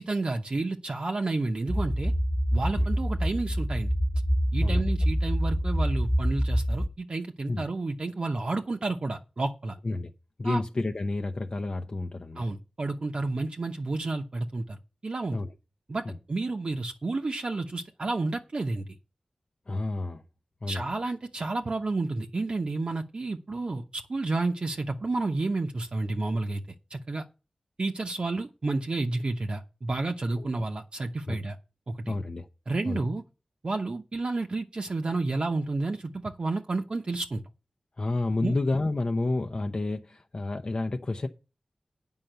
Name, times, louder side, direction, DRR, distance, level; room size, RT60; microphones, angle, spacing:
voice 1, 0.0-2.1 2.5-3.9 4.5-9.8 10.4-10.6 12.4-14.8 15.0-15.4 15.9-19.0 20.7-26.6 26.9-27.2 27.8-31.6 31.9-32.1 32.7-33.2 33.6-37.4 38.4-38.5, right 3 dB, 55° right, 0.8 m, -30 dB
sound 1, 1.7-6.9, equal, 15° left, 1.3 m, -26 dB
voice 2, 10.4-12.4 15.3-15.5 16.0-16.1 19.7-20.2 20.6-20.9 30.4-30.6 31.3-31.4 32.1-32.5 32.9-33.0 38.0-41.3, left 2 dB, 45° left, 0.7 m, -30 dB
9.0 x 5.6 x 7.9 m
wide cardioid pair, 90°, 2 cm